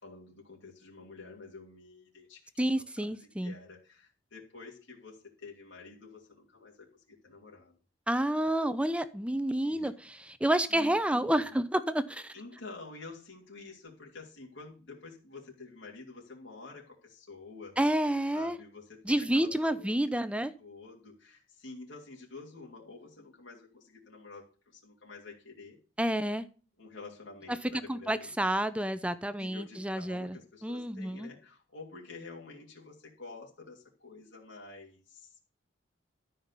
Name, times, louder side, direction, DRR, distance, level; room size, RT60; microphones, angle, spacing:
voice 1, 0.0-2.7 3.0-7.8 9.6-9.9 10.7-11.6 12.3-17.8 18.3-20.2 20.6-25.8 26.8-28.3 29.3-35.3, left 3 dB, 70° left, -3 dB, 3.0 m, -49 dB
voice 2, 2.6-3.5 8.1-12.3 17.8-18.6 19.0-20.5 26.0-26.5 27.9-30.4 30.6-31.3, right 1 dB, 5° right, 13 dB, 0.7 m, -29 dB
13.0 x 5.7 x 6.9 m, 0.36 s
head